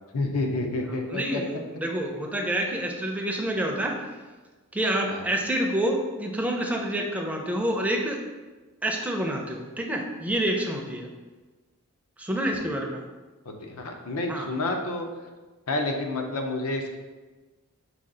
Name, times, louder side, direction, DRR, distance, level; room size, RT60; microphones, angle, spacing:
voice 1, 0.1-1.4 5.0-5.2 12.5-12.6 13.5-15.1 15.7-17.0, left 2 dB, 70° left, 3 dB, 0.6 m, -29 dB
voice 2, 1.1-4.1 4.7-8.2 8.8-11.1 12.2-13.0 14.3-14.5, right 1 dB, 5° right, 0 dB, 0.4 m, -28 dB
4.9 x 2.3 x 3.8 m, 1.3 s
head